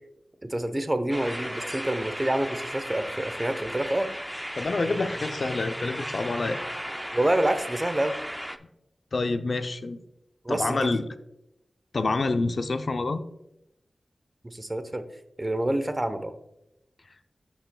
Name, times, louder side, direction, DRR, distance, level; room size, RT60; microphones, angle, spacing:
voice 1, 0.4-4.1 7.1-8.1 10.4-11.0 14.4-15.0 15.4-16.3, right 1 dB, 25° right, 9 dB, 0.8 m, -27 dB
sound 1, 1.1-8.6, equal, ahead, 0.5 m, -35 dB
voice 2, 4.6-6.6 9.1-10.0 10.5-11.1 11.9-13.2, left 3 dB, 65° left, 9 dB, 0.6 m, -27 dB
13.0 x 5.6 x 2.3 m, 0.85 s
cardioid pair, 55°, 0 cm